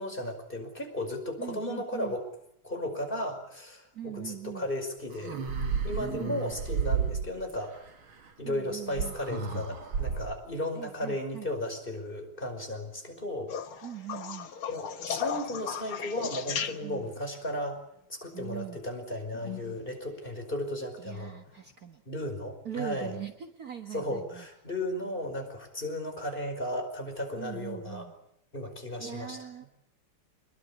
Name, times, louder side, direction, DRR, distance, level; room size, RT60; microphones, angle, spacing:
voice 1, 0.0-2.2 2.6-5.4 5.8-7.7 8.4-13.5 14.7-17.8 18.1-21.3 22.1-23.2 23.9-28.1 28.5-29.4, left 1 dB, 20° left, 4 dB, 5.4 m, -35 dB
voice 2, 1.4-2.2 3.9-4.7 6.0-6.4 8.4-9.2 10.7-11.5 13.8-14.5 16.8-17.1 18.3-18.8 21.0-22.0 22.6-24.5 27.4-28.1 29.0-29.6, right 10 dB, 45° right, 6 dB, 1.8 m, -41 dB
sound 1, 5.1-7.6 9.0-10.4, right 6 dB, 70° right, 3.1 m, -32 dB
sound 2, 13.5-17.2 19.3-19.8 21.5-21.6, left 8 dB, 70° left, 2.3 m, -35 dB
26.0 x 22.0 x 8.4 m, 0.74 s
omnidirectional pair, 2.4 m